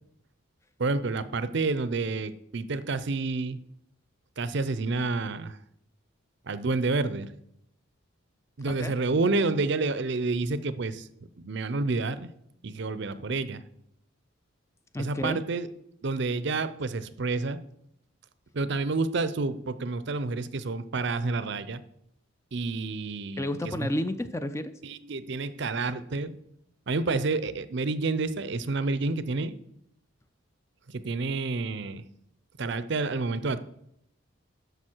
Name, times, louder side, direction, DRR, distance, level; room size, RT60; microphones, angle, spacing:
voice 1, 0.8-3.6 4.4-5.6 6.5-7.3 8.6-11.1 11.4-12.3 12.6-13.6 15.0-15.7 16.0-17.6 18.5-21.8 22.5-23.4 24.8-26.4 26.9-29.5 30.9-32.0 32.6-33.6, right 3 dB, 55° right, 14 dB, 0.5 m, -29 dB
voice 2, 14.9-15.4 23.4-24.7, left 1 dB, 15° left, 11 dB, 0.4 m, -31 dB
11.0 x 6.8 x 4.5 m, 0.75 s
head